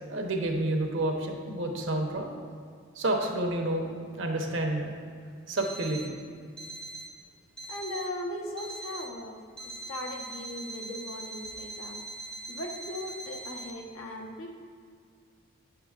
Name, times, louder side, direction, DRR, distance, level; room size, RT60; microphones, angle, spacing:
voice 1, 0.1-2.4 3.0-4.9 5.5-6.2, right 1 dB, 60° right, 2 dB, 0.8 m, -29 dB
Alarm, 5.6-6.1 6.6-7.1 7.6-8.1 8.6-9.1 9.6-13.7, right 2 dB, 5° left, 0.5 m, -42 dB
voice 2, 7.7-12.0 12.5-14.5, left 1 dB, 80° left, 1 dB, 0.9 m, -38 dB
8.6 x 6.7 x 2.4 m, 2.2 s
head